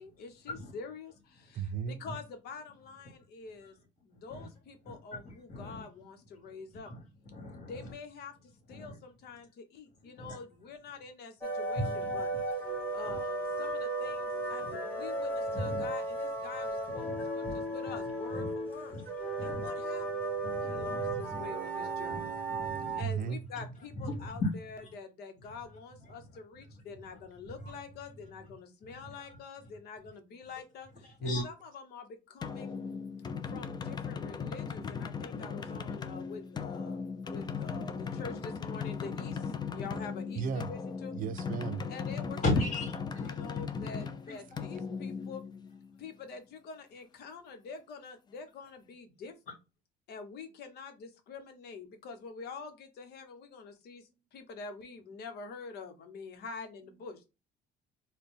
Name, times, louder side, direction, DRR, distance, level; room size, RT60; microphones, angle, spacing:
voice 1, 0.0-3.7 4.0-6.9 7.6-12.3 12.9-19.0 19.4-20.4 20.6-22.3 23.0-24.4 24.7-32.8 33.5-41.1 41.9-42.4 43.2-45.4 46.0-49.5 50.1-57.2, left 5 dB, 70° left, 1.0 m, -46 dB
voice 2, 1.5-2.0 23.0-23.4 40.4-40.7 41.1-41.9, right 7 dB, 55° right, 0.5 m, -34 dB
voice 3, 4.8-5.9 6.7-7.9 8.7-9.0 10.2-10.4 11.8-12.2 13.1-13.2 14.6-14.7 15.5-15.9 17.0-17.7 18.3-18.5 18.9-19.1 19.4-19.7 20.4-21.5 22.0-23.2 24.0-24.5 24.8-24.9 26.1-26.2 27.1-27.2 27.6-27.7 29.0-29.4 31.0-31.5 42.4-43.6 43.9-44.4, left 1 dB, 45° left, 1.9 m, -37 dB
sound 1, 11.4-23.0, right 2 dB, 10° left, 1.3 m, -35 dB
sound 2, 32.4-46.0, left 5 dB, 25° left, 0.4 m, -38 dB
4.1 x 2.2 x 3.3 m
cardioid pair, 110°, 17 cm